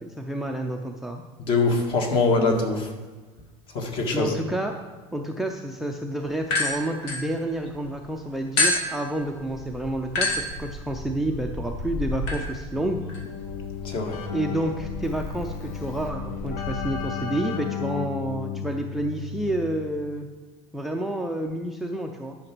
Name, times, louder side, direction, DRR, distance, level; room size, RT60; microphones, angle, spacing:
voice 1, 0.0-1.2 4.1-4.8 5.1-13.0 14.3-20.3 20.7-22.4, right 1 dB, ahead, 4 dB, 0.5 m, -29 dB
voice 2, 1.4-2.9 3.7-4.3 13.8-14.2, left 3 dB, 40° left, 3 dB, 1.6 m, -23 dB
sound 1, 6.4-7.9 8.6-16.9, left 2 dB, 80° left, 2.3 m, -30 dB
Keyboard (musical), 12.7-20.0, left 8 dB, 55° left, 1.1 m, -34 dB
11.0 x 5.9 x 6.0 m, 1.3 s
cardioid pair, 165°, 14 cm